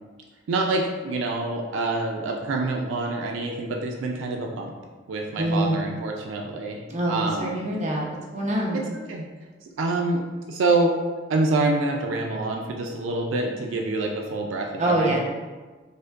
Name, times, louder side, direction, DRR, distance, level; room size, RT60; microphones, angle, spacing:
voice 1, 0.5-4.7 5.1-7.6 8.7-9.3 9.6-11.0 11.3-15.2, right 2 dB, 85° right, 1 dB, 0.4 m, -26 dB
voice 2, 5.3-5.9 6.9-8.8 14.8-15.2, right 1 dB, 35° right, -3 dB, 0.7 m, -25 dB
5.1 x 2.1 x 2.4 m, 1.3 s
head